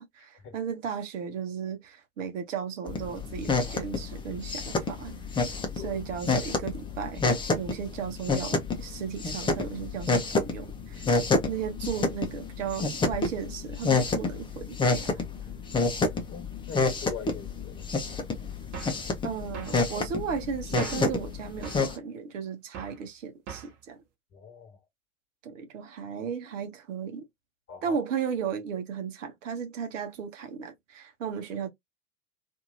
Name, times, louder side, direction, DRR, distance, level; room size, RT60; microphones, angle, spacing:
voice 1, 0.1-5.4 5.7-7.3 7.5-11.1 11.5-15.2 19.2-24.0 25.4-27.2 27.8-31.7, right 7 dB, 60° right, 0.9 m, -35 dB
sound 1, 2.9-21.9, left 3 dB, 10° left, 0.7 m, -29 dB
voice 2, 16.3-17.9 24.3-24.8 27.7-28.0, left 7 dB, 30° left, 1.4 m, -42 dB
sound 2, 18.7-19.0 19.5-19.8 20.8-21.1 21.6-21.9 22.7-23.0 23.5-23.8, right 6 dB, 40° right, 1.0 m, -39 dB
2.7 x 2.6 x 2.6 m
figure-of-eight pair, 80°, 42 cm